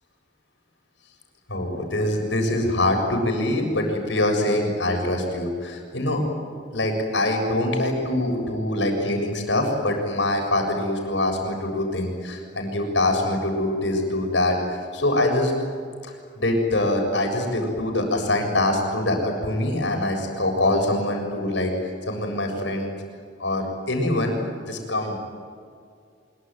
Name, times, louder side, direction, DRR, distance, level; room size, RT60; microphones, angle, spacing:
voice 1, 1.5-6.2 6.7-15.5 16.0-21.7 22.1-22.9 23.4-25.2, left 1 dB, 85° left, 3 dB, 7.3 m, -24 dB
25.0 x 23.5 x 9.4 m, 2.2 s
head